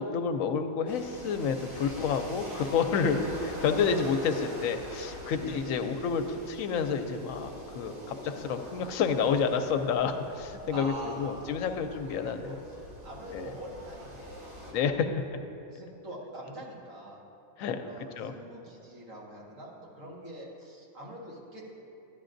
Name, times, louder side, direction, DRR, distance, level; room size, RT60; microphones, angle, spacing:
voice 1, 0.0-3.2 3.6-10.9 11.2-12.5 13.3-13.5 14.7-15.1 17.6-17.8 18.2-18.3, left 6 dB, 80° left, 7 dB, 1.0 m, -29 dB
sound 1, 0.9-14.7, equal, 90° right, 2.5 m, -44 dB
voice 2, 5.3-5.8 10.7-12.6 13.0-15.4 15.7-17.2 17.6-21.7, right 1 dB, 65° right, -4 dB, 2.0 m, -44 dB
13.0 x 10.0 x 2.6 m, 2.8 s
omnidirectional pair, 1.4 m